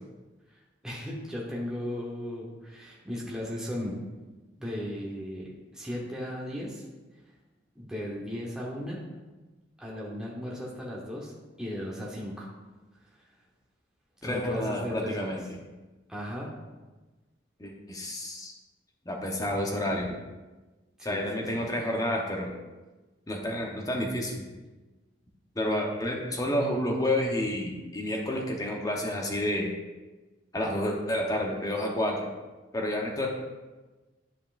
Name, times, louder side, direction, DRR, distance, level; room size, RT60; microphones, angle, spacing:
voice 1, 0.5-4.0 4.6-6.8 7.7-9.0 9.8-12.5 14.2-15.4 16.1-16.5 21.0-21.7, equal, 5° right, -4 dB, 0.9 m, -36 dB
voice 2, 14.2-15.4 17.6-18.5 19.1-20.1 21.0-22.5 23.3-24.5 25.6-29.7 30.5-32.3 32.7-33.3, left 1 dB, 20° left, 0 dB, 0.9 m, -30 dB
10.0 x 5.4 x 2.5 m, 1.2 s
head